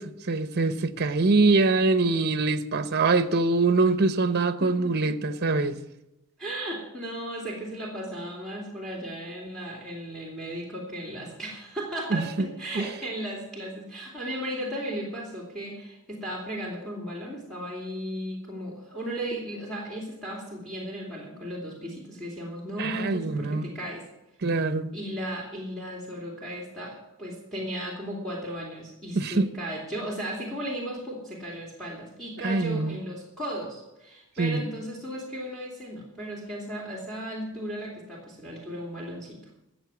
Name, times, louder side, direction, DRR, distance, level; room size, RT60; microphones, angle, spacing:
voice 1, 0.0-5.8 12.1-12.5 12.7-12.9 22.8-23.7 24.4-24.9 29.1-29.5 32.4-33.0 34.4-34.7, right 3 dB, 45° right, 0.8 m, -24 dB
voice 2, 6.4-24.0 24.9-39.4, right 1 dB, ahead, 2.9 m, -35 dB
13.5 x 7.7 x 8.1 m
head